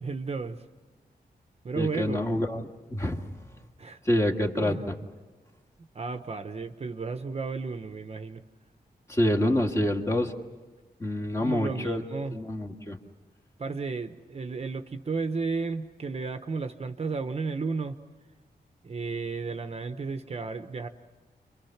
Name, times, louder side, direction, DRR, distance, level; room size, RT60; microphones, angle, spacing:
voice 1, 0.0-0.6 1.6-2.2 3.8-4.0 4.5-5.1 5.9-8.4 11.4-12.4 13.6-18.0 18.8-20.9, right 4 dB, 40° right, 8 dB, 0.9 m, -33 dB
voice 2, 1.8-3.5 4.0-4.9 9.1-10.3 11.0-12.0 12.3-13.0, left 1 dB, 15° left, 3 dB, 1.8 m, -27 dB
30.0 x 24.5 x 5.9 m, 1.3 s
wide cardioid pair, 180°, 17 cm